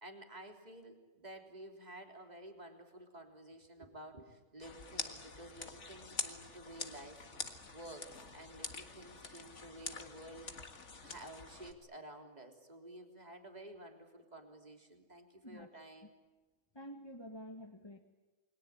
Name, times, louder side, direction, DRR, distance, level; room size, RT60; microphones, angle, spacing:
voice 1, 0.0-8.1 8.3-10.5 11.0-16.2, right 1 dB, 35° right, 3 dB, 3.5 m, -52 dB
sound 1, 4.6-11.7, left 4 dB, 75° left, 2.2 m, -45 dB
voice 2, 16.7-18.0, equal, 20° left, 2 dB, 1.7 m, -49 dB
29.0 x 22.5 x 8.8 m, 1.2 s
omnidirectional pair, 1.2 m